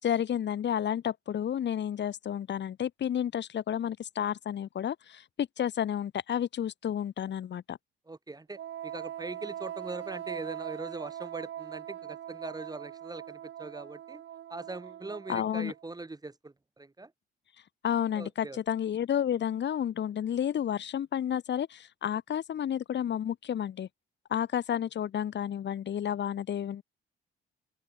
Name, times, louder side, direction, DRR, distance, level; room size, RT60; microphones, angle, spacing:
voice 1, 0.0-7.8 15.3-15.7 17.8-23.9 24.3-26.8, left 9 dB, 60° left, 4.9 m, -31 dB
voice 2, 8.1-14.2 14.5-17.1 18.1-18.6, right 2 dB, 20° right, 7.7 m, -41 dB
Wind instrument woodwind instrument, 8.5-15.9, right 11 dB, 70° right, 6.3 m, -41 dB
open air
cardioid pair, 90°, 20 cm